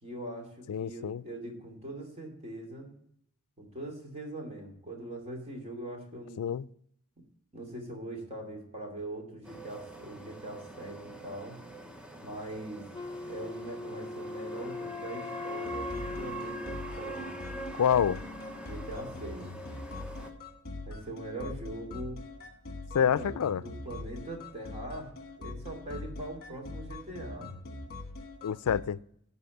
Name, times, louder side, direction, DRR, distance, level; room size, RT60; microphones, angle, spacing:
voice 1, 0.0-2.9 3.6-6.4 7.5-11.6 12.2-12.8 13.3-17.5 18.6-19.5 20.9-22.2 22.9-25.1 25.4-27.5, right 1 dB, 30° right, 2.6 m, -42 dB
voice 2, 0.7-1.2 6.4-6.7 17.7-18.2 22.9-23.6 28.4-29.0, left 8 dB, 90° left, 0.4 m, -27 dB
sound 1, 9.4-20.3, right 2 dB, 5° right, 0.8 m, -44 dB
Wind instrument woodwind instrument, 12.9-17.9, left 3 dB, 20° left, 0.4 m, -40 dB
sound 2, 15.6-28.8, left 2 dB, 45° left, 1.3 m, -43 dB
11.0 x 4.2 x 7.8 m
head